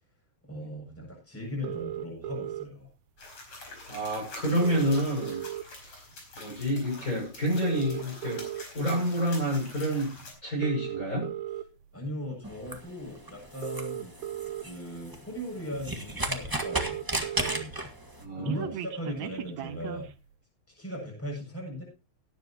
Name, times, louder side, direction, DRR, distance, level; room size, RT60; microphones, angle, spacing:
voice 1, 0.4-2.9 11.9-14.1 14.6-17.7 18.3-20.1 20.7-21.8, equal, 5° left, -2 dB, 7.2 m, -38 dB
sound 1, 1.6-2.6 3.8-3.9 4.2-4.3 4.5-5.9 6.4-6.6 7.5-8.6 9.3-9.6 10.5-11.6 12.9-13.0 13.4-14.6 15.3-15.4 15.7-15.8 16.0-16.1 16.3-17.6 17.9-20.1, right 12 dB, 80° right, 2.2 m, -36 dB
sound 2, 3.2-10.3, left 2 dB, 55° left, 5.9 m, -46 dB
voice 2, 3.9-5.4 5.8-6.0 6.4-8.4 8.7-10.1 10.4-11.3 18.2-18.7, equal, 25° left, -4 dB, 6.9 m, -28 dB
sound 3, 12.4-18.2, right 1 dB, 15° right, 0.7 m, -35 dB
18.0 x 10.5 x 2.9 m, 0.30 s
omnidirectional pair, 3.3 m